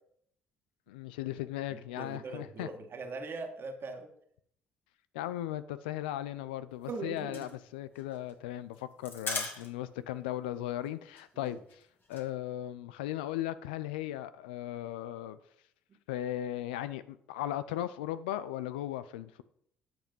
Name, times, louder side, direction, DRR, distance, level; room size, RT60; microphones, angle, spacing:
voice 1, 0.9-2.7 5.1-11.8 12.1-15.4 16.1-19.4, left 13 dB, 85° left, 14 dB, 0.5 m, -37 dB
voice 2, 1.7-4.1 6.9-7.5 11.4-11.6 15.9-16.0, right 3 dB, 50° right, 6 dB, 1.8 m, -41 dB
sound 1, 6.7-10.1 10.3-10.4 10.7-10.9 11.2-12.3, left 3 dB, 45° left, 2.4 m, -40 dB
10.0 x 6.1 x 5.3 m, 0.69 s
hypercardioid pair, 55°, 5 cm